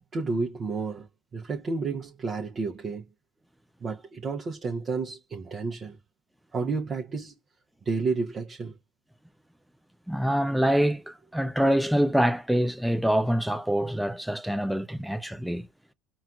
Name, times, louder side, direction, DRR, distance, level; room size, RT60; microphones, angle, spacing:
voice 1, 0.1-3.0 3.8-6.0 6.5-7.3 7.8-8.7, right 4 dB, 30° right, 0.7 m, -31 dB
voice 2, 10.1-15.7, equal, ahead, 0.3 m, -25 dB
4.1 x 2.3 x 2.3 m
supercardioid pair, 105°, 0 cm